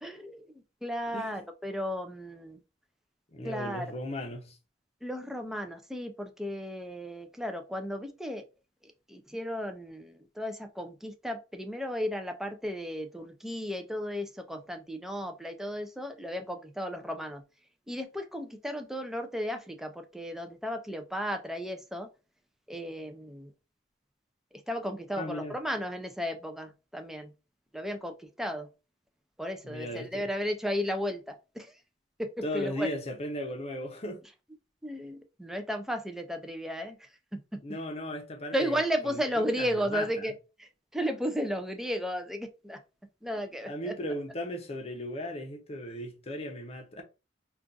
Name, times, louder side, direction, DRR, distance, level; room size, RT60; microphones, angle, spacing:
voice 1, 0.0-2.6 3.4-3.9 5.0-8.4 8.8-17.4 17.9-22.1 22.7-23.5 24.5-27.3 27.7-28.7 29.4-31.7 32.2-32.9 34.8-37.6 38.5-40.3 40.6-42.8 43.2-43.9, equal, ahead, 0.3 m, -34 dB
voice 2, 1.1-1.4 3.3-4.6 25.2-25.6 29.6-30.3 32.4-34.2 37.6-40.3 43.6-47.0, left 1 dB, 35° left, 0.6 m, -37 dB
2.5 x 2.3 x 3.8 m
head